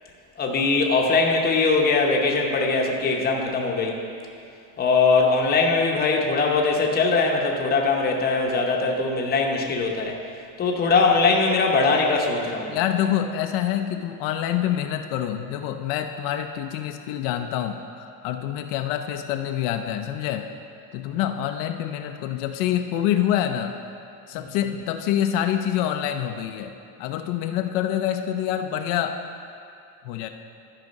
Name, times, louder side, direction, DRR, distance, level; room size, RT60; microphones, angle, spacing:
voice 1, 0.4-4.0 4.8-10.2 10.6-12.7 21.1-21.2 24.3-24.5, left 4 dB, 25° left, 0 dB, 0.9 m, -21 dB
voice 2, 12.7-20.5 20.9-23.8 24.3-29.2 30.0-30.3, left 10 dB, 75° left, 6 dB, 0.6 m, -26 dB
12.5 x 4.9 x 5.2 m, 2.4 s
cardioid pair, 160°, 41 cm